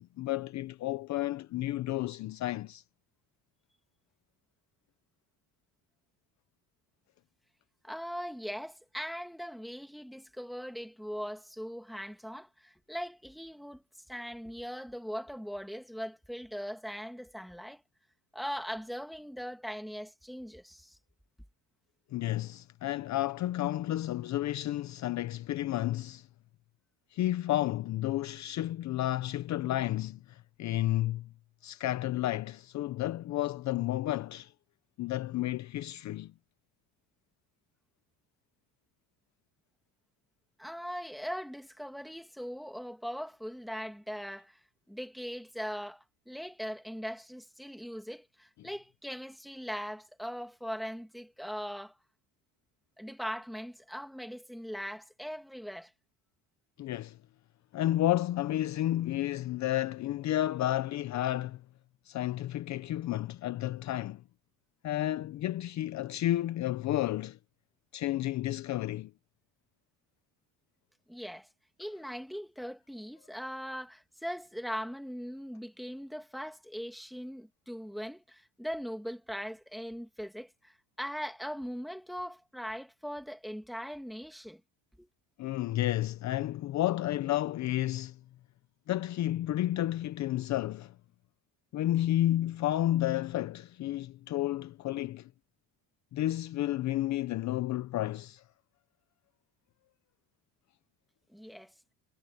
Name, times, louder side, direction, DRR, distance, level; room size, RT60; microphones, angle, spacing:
voice 1, 0.0-2.8 22.1-26.3 27.1-31.3 31.6-34.5 35.0-36.3 56.8-57.2 57.7-61.6 62.1-64.2 64.8-67.4 67.9-69.1 85.4-88.2 88.9-90.9 91.7-95.3 96.1-98.4, left 14 dB, 45° left, 0.7 m, -31 dB
voice 2, 7.8-13.8 14.1-17.8 18.3-21.0 40.6-44.6 44.9-52.0 53.0-55.9 71.1-71.5 71.8-84.6 85.0-85.1 101.3-101.7, equal, ahead, 2.2 m, -40 dB
cardioid pair, 150°, 40 cm